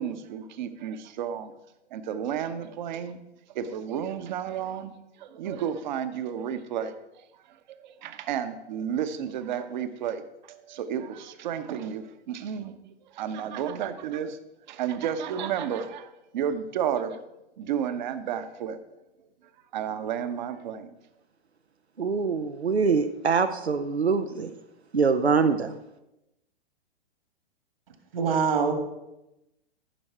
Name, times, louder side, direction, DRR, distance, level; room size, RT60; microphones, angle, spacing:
voice 1, 0.0-1.5 1.9-3.2 3.5-4.9 5.2-7.0 7.8-12.8 13.1-14.4 14.7-17.2 17.6-18.8 19.7-20.9, right 8 dB, 45° right, 11 dB, 1.0 m, -32 dB
voice 2, 22.0-24.6 24.9-25.8, right 5 dB, 85° right, 7 dB, 0.7 m, -24 dB
voice 3, 28.1-28.7, right 6 dB, 60° right, 6 dB, 2.0 m, -23 dB
14.5 x 6.4 x 4.6 m, 0.93 s
figure-of-eight pair, 105°, 32 cm